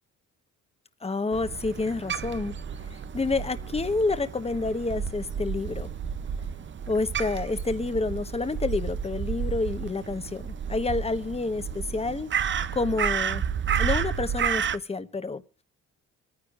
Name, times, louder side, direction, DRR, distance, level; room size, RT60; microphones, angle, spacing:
voice 1, 1.0-2.5 2.9-5.9 6.9-12.3 12.7-15.4, left 3 dB, 20° left, 1.1 m, -29 dB
Crow, 1.3-14.8, right 7 dB, 40° right, 0.7 m, -31 dB
25.0 x 9.8 x 2.5 m
cardioid pair, 90°, 30 cm